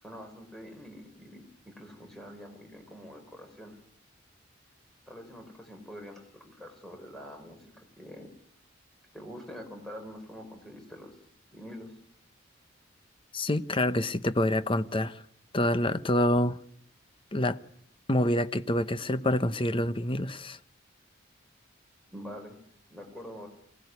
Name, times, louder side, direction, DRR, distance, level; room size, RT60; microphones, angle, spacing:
voice 1, 0.0-3.8 5.1-8.3 9.1-11.2 11.5-11.9 22.1-22.6 22.9-23.5, equal, ahead, 5.0 m, -45 dB
voice 2, 13.3-15.2 15.5-16.6 17.3-17.6 18.1-20.6, left 1 dB, 25° left, 0.9 m, -27 dB
24.5 x 18.0 x 9.6 m
head